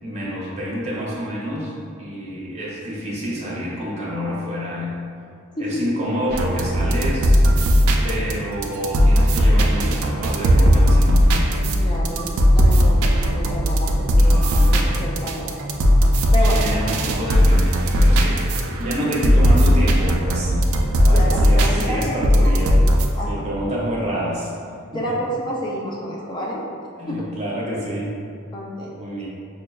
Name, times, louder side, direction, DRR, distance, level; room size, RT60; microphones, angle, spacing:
voice 1, 0.0-1.7 2.0-5.0 5.6-7.4 8.0-11.3 14.2-15.0 16.4-18.4 18.8-22.8 23.3-24.5 24.9-25.0 27.0-28.1 29.0-29.3, equal, 30° right, -6 dB, 0.7 m, -28 dB
voice 2, 5.5-6.0 11.6-14.4 14.7-15.5 16.3-16.7 21.1-22.2 23.2-23.3 24.9-26.6 27.1-27.3 28.5-28.9, equal, 20° left, -4 dB, 0.3 m, -29 dB
sound 1, 6.3-23.1, equal, 85° right, 0.4 m, -17 dB
5.6 x 2.1 x 2.2 m, 2.3 s
head